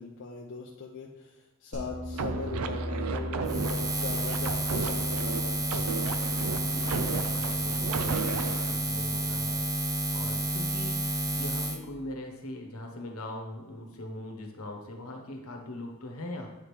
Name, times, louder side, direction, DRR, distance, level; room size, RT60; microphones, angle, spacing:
voice 1, 0.0-5.7, left 4 dB, 55° left, -1 dB, 0.6 m, -40 dB
sound 1, 1.7-6.9, equal, 35° right, 1.8 m, -39 dB
sound 2, 2.1-8.8, right 5 dB, 75° right, 0.4 m, -34 dB
Buzz, 3.4-11.8, right 1 dB, 15° right, 0.5 m, -30 dB
voice 2, 6.3-16.5, left 1 dB, 75° left, 2 dB, 1.2 m, -41 dB
8.4 x 5.0 x 3.3 m, 1.1 s
head